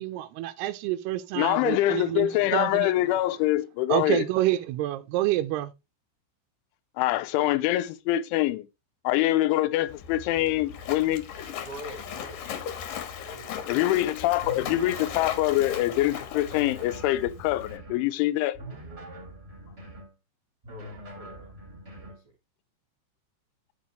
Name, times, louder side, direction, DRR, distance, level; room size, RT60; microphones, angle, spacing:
voice 1, 0.0-2.9 3.9-5.7, right 15 dB, 85° right, 2.3 m, -28 dB
voice 2, 1.3-4.3 7.0-8.7 9.0-11.2 13.7-18.6, left 15 dB, 85° left, 3.1 m, -25 dB
Splash splatter, 9.9-17.8, left 8 dB, 65° left, 2.3 m, -38 dB
voice 3, 11.6-12.5 13.2-13.6 20.7-21.5 21.9-22.1, equal, 50° right, 1.6 m, -44 dB
sound 1, 14.4-15.9 16.5-18.0 18.5-20.1 20.6-22.2, right 1 dB, 20° right, 1.9 m, -43 dB
11.5 x 6.7 x 3.2 m
omnidirectional pair, 5.6 m